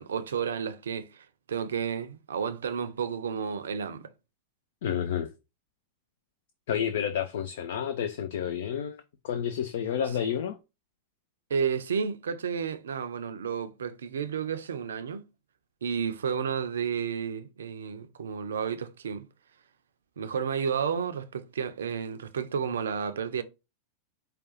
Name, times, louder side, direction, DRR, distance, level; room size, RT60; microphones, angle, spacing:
voice 1, 0.0-4.1 11.5-15.2 15.8-19.3 20.2-23.4, right 7 dB, 65° right, 0.5 m, -31 dB
voice 2, 4.8-5.3 6.7-9.0 9.2-10.6, left 8 dB, 55° left, 0.4 m, -30 dB
4.8 x 2.3 x 3.9 m
figure-of-eight pair, 90°, 0 cm